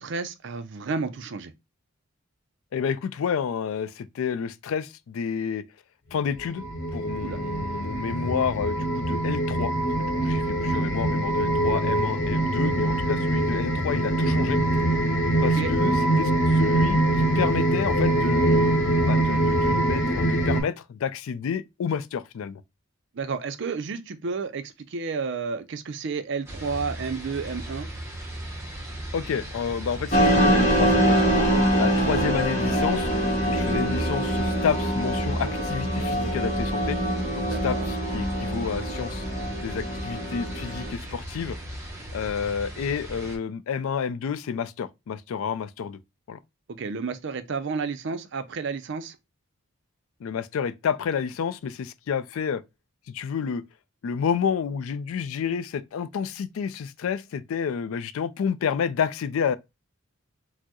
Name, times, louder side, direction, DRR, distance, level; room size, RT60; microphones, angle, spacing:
voice 1, 0.0-1.5 7.2-7.4 15.4-15.7 23.1-27.9 33.7-33.8 37.4-37.9 46.7-49.2, right 4 dB, 55° right, 0.4 m, -31 dB
voice 2, 2.7-5.6 6.1-6.6 6.9-9.7 10.0-14.6 15.4-22.6 29.1-31.5 31.8-33.1 33.5-37.0 37.3-39.3 39.6-41.6 42.1-46.0 46.3-46.4 50.2-52.6 53.1-53.6 54.0-59.6, left 7 dB, 70° left, 0.3 m, -30 dB
sound 1, 6.3-20.6, right 1 dB, 55° left, 0.8 m, -23 dB
sound 2, 26.5-43.4, right 1 dB, 10° right, 0.8 m, -35 dB
sound 3, 30.1-40.9, equal, 30° left, 1.1 m, -24 dB
4.3 x 2.0 x 2.9 m
head